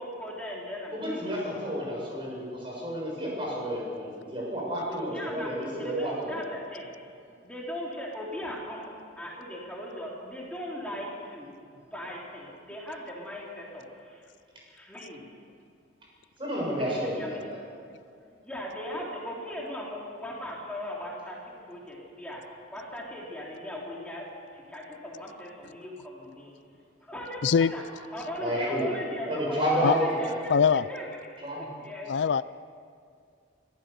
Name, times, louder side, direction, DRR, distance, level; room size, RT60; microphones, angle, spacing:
voice 1, 0.0-1.4 5.1-6.9 7.4-8.9 9.2-14.3 14.7-15.3 16.7-17.7 18.4-22.4 22.7-24.3 24.5-26.5 27.0-27.8 28.1-31.0 31.7-32.1, equal, 5° left, -4 dB, 3.4 m, -38 dB
voice 2, 0.9-6.4 16.4-17.6 28.4-28.9 29.2-30.3 31.4-31.6, equal, 30° right, -3 dB, 6.9 m, -30 dB
voice 3, 30.5-30.8 32.1-32.4, left 6 dB, 75° left, 17 dB, 0.4 m, -22 dB
24.5 x 15.0 x 7.0 m, 2.3 s
head